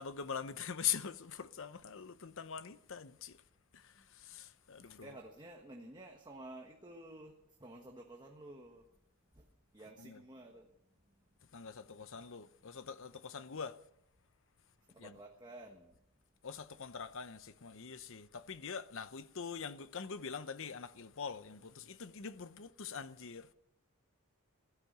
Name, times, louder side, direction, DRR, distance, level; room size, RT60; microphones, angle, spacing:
voice 1, 0.0-3.4 3.7-5.2 10.0-10.2 11.5-13.8 15.0-15.2 16.4-23.5, left 7 dB, 60° left, 0.8 m, -43 dB
voice 2, 5.0-7.3 7.6-8.9 9.3-9.5 9.7-10.7 14.9-15.9, right 1 dB, 20° right, 1.4 m, -52 dB
16.5 x 12.5 x 6.7 m
head